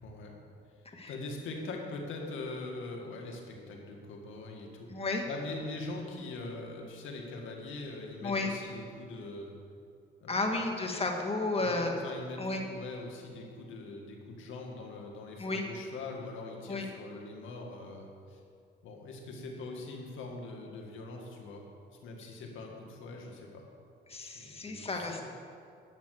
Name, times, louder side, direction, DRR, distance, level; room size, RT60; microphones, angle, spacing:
voice 1, 0.0-0.4 1.1-9.5 10.2-10.5 11.6-18.4 18.8-21.6 22.0-23.6 24.2-25.3, left 3 dB, 80° left, 1 dB, 2.1 m, -42 dB
voice 2, 4.9-5.3 8.2-8.5 10.3-11.9 12.4-12.6 15.4-15.7 16.7-16.9 24.1-25.3, left 2 dB, 30° left, 2 dB, 1.7 m, -32 dB
12.0 x 6.3 x 8.4 m, 2.4 s
cardioid pair, 90°, 20 cm